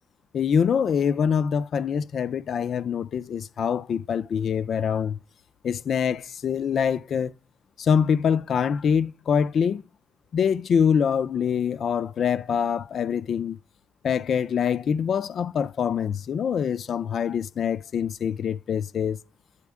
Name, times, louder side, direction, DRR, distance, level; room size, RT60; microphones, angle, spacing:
voice 1, 0.3-5.2 5.6-7.3 7.8-9.8 10.3-13.6 14.0-19.2, left 7 dB, 55° left, 0.3 m, -24 dB
9.7 x 4.2 x 3.5 m
cardioid pair, 120°, 0 cm